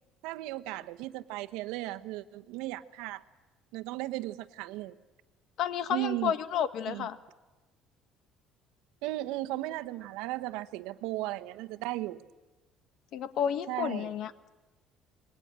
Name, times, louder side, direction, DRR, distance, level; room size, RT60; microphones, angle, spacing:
voice 1, 0.2-3.2 3.7-5.0 5.9-6.3 6.9-7.1 9.0-12.2 13.7-14.1, right 17 dB, 90° right, 10 dB, 1.1 m, -36 dB
voice 2, 5.6-7.2 13.1-14.3, left 9 dB, 55° left, 12 dB, 1.5 m, -31 dB
29.0 x 21.5 x 8.9 m, 1.2 s
cardioid pair, 135°, 0 cm